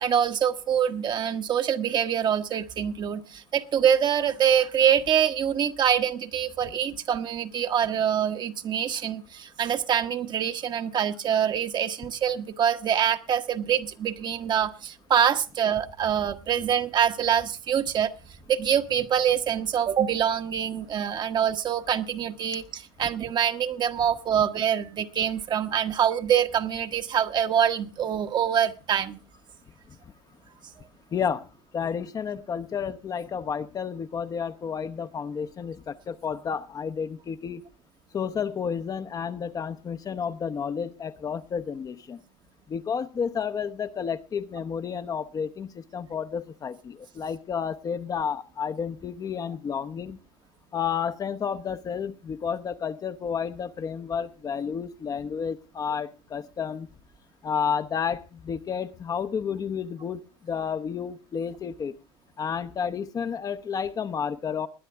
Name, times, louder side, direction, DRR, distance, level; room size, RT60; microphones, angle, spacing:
voice 1, 0.0-18.1 18.5-29.2, right 9 dB, 40° right, 8 dB, 1.1 m, -25 dB
voice 2, 31.1-31.4 31.7-37.6 38.1-42.2 42.7-50.2 50.7-56.9 57.4-61.9 62.4-64.7, left 7 dB, 30° left, 10 dB, 0.8 m, -31 dB
20.0 x 10.0 x 3.5 m, 0.32 s
hypercardioid pair, 90°, 12 cm